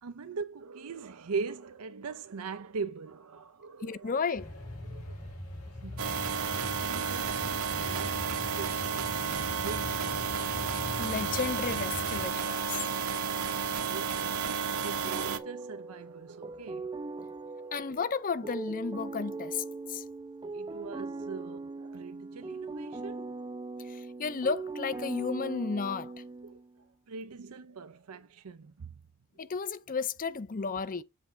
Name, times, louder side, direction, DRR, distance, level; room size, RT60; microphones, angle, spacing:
voice 1, 0.0-4.1 4.8-5.3 5.8-6.1 6.4-10.3 13.8-16.9 17.6-17.7 20.5-23.2 26.4-26.6 27.1-28.9, right 5 dB, 85° right, 0.5 m, -41 dB
voice 2, 3.8-4.5 11.0-12.8 17.7-20.0 23.8-26.1 29.4-31.0, left 5 dB, 40° left, 0.6 m, -33 dB
sound 1, 4.3-12.3, left 1 dB, 90° left, 3.4 m, -41 dB
sound 2, 6.0-15.4, right 6 dB, 70° right, 1.0 m, -32 dB
sound 3, 15.0-26.8, right 3 dB, 20° right, 0.4 m, -40 dB
7.5 x 3.5 x 5.6 m
head